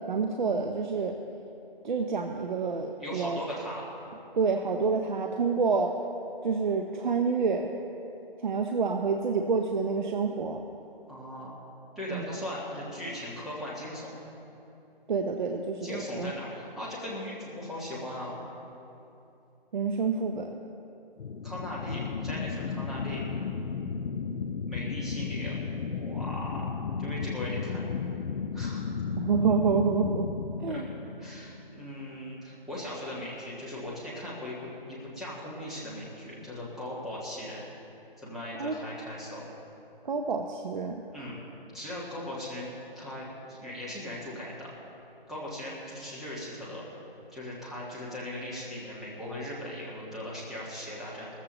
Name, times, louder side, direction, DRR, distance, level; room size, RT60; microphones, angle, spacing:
voice 1, 0.1-1.2 1.8-3.4 4.3-5.9 6.4-7.7 8.4-10.6 12.1-12.4 15.1-16.3 19.7-20.6 29.2-30.3 30.6-30.9 38.6-38.8 40.0-41.0, right 5 dB, 55° right, 4 dB, 0.8 m, -28 dB
voice 2, 3.0-3.9 11.1-11.5 11.9-14.2 15.8-18.4 21.4-23.2 24.7-25.6 25.9-27.8 28.5-28.8 30.7-30.8 31.2-37.6 38.2-39.4 41.1-41.4 41.7-44.7 45.3-46.8 47.3-51.3, left 1 dB, ahead, -8 dB, 1.3 m, -38 dB
sound 1, 21.2-32.1, left 5 dB, 90° left, 0.8 m, -34 dB
19.0 x 14.5 x 3.0 m, 2.8 s
hypercardioid pair, 160°, 29 cm